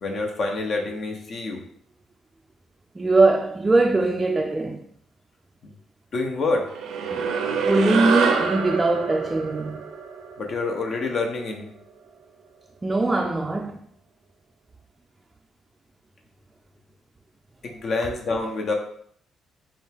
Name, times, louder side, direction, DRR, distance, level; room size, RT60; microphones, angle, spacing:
voice 1, 0.0-1.6 5.6-5.7 6.1-6.7 10.4-11.7 17.6-18.7, left 3 dB, 55° left, 0.8 m, -27 dB
voice 2, 3.0-4.8 7.1-7.2 7.6-9.8 12.8-13.8, right 2 dB, 20° right, 0.4 m, -21 dB
sound 1, 6.7-11.4, right 5 dB, 85° right, 0.6 m, -26 dB
5.1 x 2.4 x 3.4 m
cardioid pair, 90°, 0 cm